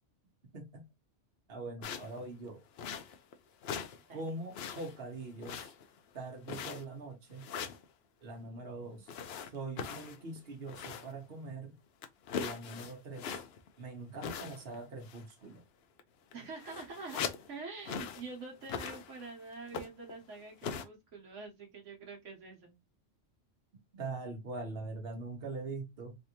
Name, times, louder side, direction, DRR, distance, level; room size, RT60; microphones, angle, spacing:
voice 1, 0.5-0.8 1.5-2.6 4.1-5.7 6.1-7.5 8.2-9.1 9.4-11.8 12.3-13.4 13.8-15.6 23.9-26.2, right 3 dB, 55° right, 1.2 m, -43 dB
sound 1, 1.8-2.2 2.8-3.3 3.6-4.0 4.3-5.0 5.4-6.0 6.5-7.0 7.4-7.8 9.1-11.2 11.5-11.6 12.0-13.7 14.2-14.8 15.0-15.3 16.0-16.1 16.3-17.5 17.8-18.3 18.6-19.3 19.7-20.1 20.6-20.8, left 6 dB, 65° left, 0.7 m, -40 dB
voice 2, 8.4-9.0 12.7-12.8 16.3-22.7, right 4 dB, 80° right, 1.3 m, -46 dB
3.4 x 2.6 x 2.8 m
omnidirectional pair, 1.2 m